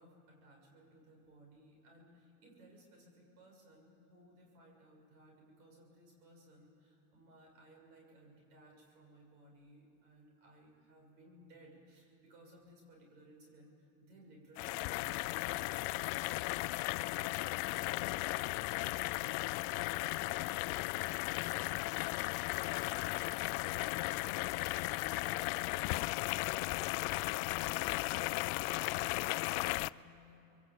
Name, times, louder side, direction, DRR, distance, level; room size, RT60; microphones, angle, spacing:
voice 1, 0.0-15.8 27.5-30.6, right 1 dB, 90° right, 0 dB, 6.7 m, -61 dB
sound 1, 14.6-29.9, left 21 dB, 65° left, 0.5 m, -36 dB
voice 2, 17.7-22.9 23.3-25.5 25.9-26.6, right 1 dB, 10° right, 0 dB, 3.7 m, -65 dB
26.5 x 22.5 x 8.4 m, 2.9 s
supercardioid pair, 105°, 44 cm